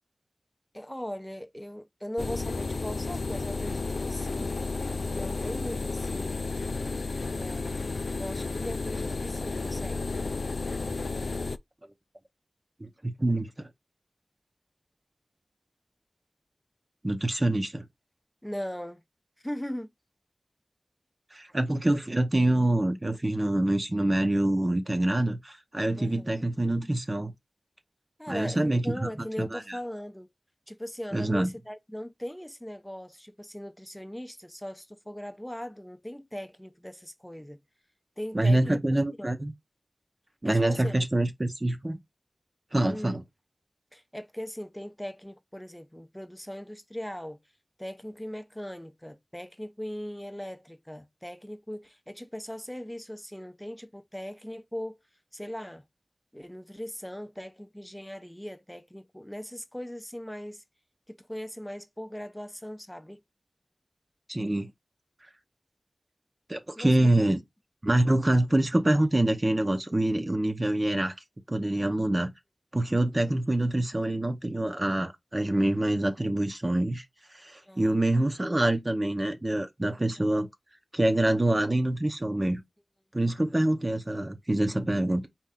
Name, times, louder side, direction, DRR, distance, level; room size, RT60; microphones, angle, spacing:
voice 1, 0.7-4.5 5.1-6.5 7.3-10.1 18.4-19.0 19.4-19.9 26.0-26.4 28.2-30.3 30.7-37.6 38.2-38.8 39.2-39.4 40.4-40.9 42.9-43.2 43.9-47.4 47.8-55.0 55.3-55.8 56.3-60.6 61.1-63.2 66.8-67.3 77.6-78.2, equal, 10° left, 0.7 m, -39 dB
sound 1, 2.2-11.6, left 3 dB, 80° left, 0.3 m, -32 dB
voice 2, 12.8-13.7 17.0-17.8 21.3-27.3 28.3-29.1 29.4-29.8 31.1-31.5 38.3-39.5 40.4-42.0 42.7-43.2 64.3-64.7 66.5-67.4 67.8-71.1 71.5-72.3 72.7-77.0 77.3-80.5 80.9-82.6 83.1-85.3, right 1 dB, 35° right, 0.8 m, -26 dB
4.3 x 2.6 x 3.6 m
wide cardioid pair, 55°, 0 cm